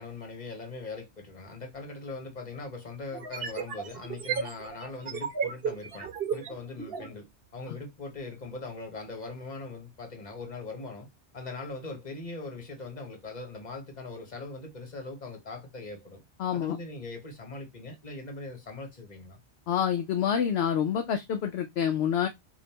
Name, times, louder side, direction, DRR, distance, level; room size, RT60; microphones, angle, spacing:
voice 1, 0.0-11.1 11.3-16.2 16.5-19.4, left 3 dB, 40° left, 1.3 m, -41 dB
sound 1, 1.7-1.8 3.1-7.1, right 6 dB, 60° right, 1.0 m, -34 dB
voice 2, 16.4-16.8 19.7-22.3, left 8 dB, 70° left, 0.8 m, -27 dB
5.2 x 2.7 x 2.8 m
omnidirectional pair, 1.2 m